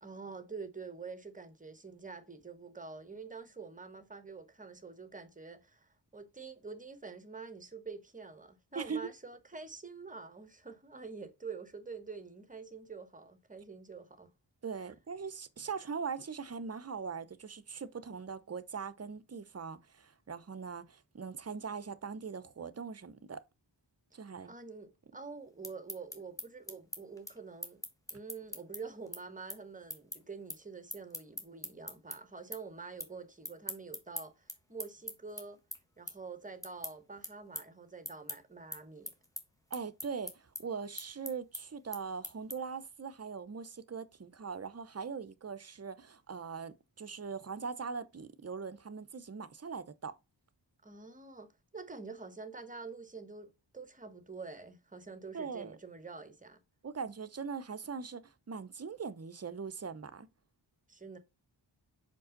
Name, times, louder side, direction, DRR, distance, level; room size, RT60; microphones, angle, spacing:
voice 1, 0.0-14.3 24.5-27.8 28.1-35.6 36.0-39.1 50.8-56.6 60.9-61.2, right 4 dB, 20° right, 1.2 m, -47 dB
voice 2, 14.6-23.4 24.1-24.5 39.7-50.2 55.3-55.8 56.8-60.3, right 5 dB, 35° right, 0.7 m, -41 dB
sound 1, 25.4-32.2 32.5-33.1 33.4-42.8, left 1 dB, 5° left, 1.3 m, -43 dB
5.3 x 5.2 x 3.8 m
wide cardioid pair, 140°, 44 cm